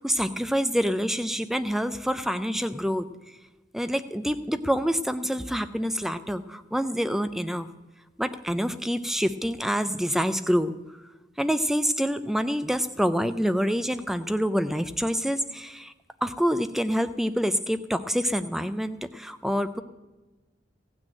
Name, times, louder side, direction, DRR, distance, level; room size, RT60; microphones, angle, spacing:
voice 1, 0.0-3.1 3.7-7.7 8.2-10.7 11.4-15.9 16.2-19.8, equal, ahead, 11 dB, 0.4 m, -26 dB
15.5 x 6.2 x 8.8 m, 1.1 s
head